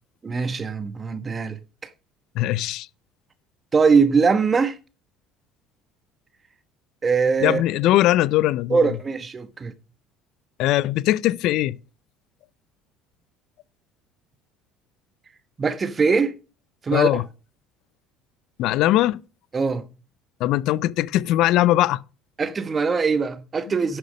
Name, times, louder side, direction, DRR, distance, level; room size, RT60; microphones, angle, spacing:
voice 1, 0.2-1.6 3.7-4.8 7.0-7.6 8.7-9.7 15.6-16.4 16.8-17.2 19.5-19.9 22.4-24.0, right 5 dB, 30° right, 1.1 m, -21 dB
voice 2, 2.4-2.9 7.4-8.8 10.6-11.8 16.9-17.2 18.6-19.2 20.4-22.0, left 15 dB, 65° left, 0.5 m, -20 dB
11.0 x 6.7 x 5.2 m
hypercardioid pair, 70°, 0 cm